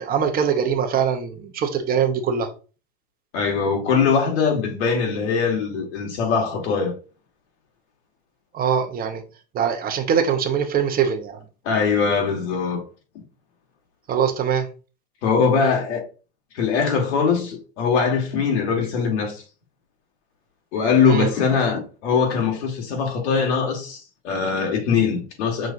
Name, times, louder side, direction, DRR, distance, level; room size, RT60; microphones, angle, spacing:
voice 1, 0.0-2.5 8.5-9.2 9.5-11.4 14.1-14.7 21.0-21.3, right 7 dB, 25° right, 0.7 m, -22 dB
voice 2, 3.3-6.9 11.6-12.8 15.2-16.0 16.5-19.4 20.7-25.7, left 6 dB, 85° left, 1.6 m, -21 dB
6.1 x 2.7 x 2.5 m
supercardioid pair, 120°, 33 cm